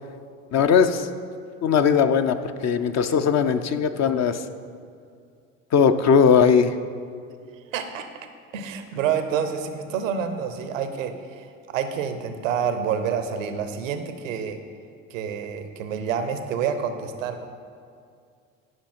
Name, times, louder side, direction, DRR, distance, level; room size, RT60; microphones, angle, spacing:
voice 1, 0.5-1.1 1.6-2.4 2.6-4.4 5.7-6.7, left 6 dB, 45° left, 9 dB, 0.6 m, -19 dB
voice 2, 7.7-8.1 8.5-11.5 11.7-14.6 15.1-17.5, right 7 dB, 85° right, 8 dB, 0.8 m, -28 dB
10.5 x 5.6 x 4.3 m, 2.3 s
hypercardioid pair, 70°, 38 cm